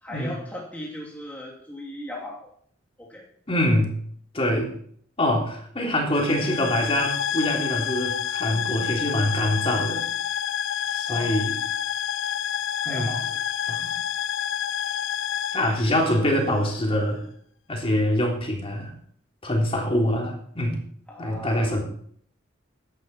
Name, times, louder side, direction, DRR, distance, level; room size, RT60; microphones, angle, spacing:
voice 1, 0.0-2.5 3.0-3.3 11.1-11.3 12.8-13.4 21.1-21.7, left 1 dB, 10° left, -3 dB, 2.6 m, -37 dB
voice 2, 3.5-4.0 4.3-4.7 5.2-10.0 10.9-11.5 12.9-13.1 13.7-13.9 15.5-17.2 17.7-18.9 19.4-20.8 21.2-21.8, left 1 dB, 30° left, 0 dB, 3.6 m, -24 dB
sound 1, 6.1-16.7, left 9 dB, 75° left, 0.5 m, -29 dB
16.0 x 11.5 x 4.4 m, 0.62 s
head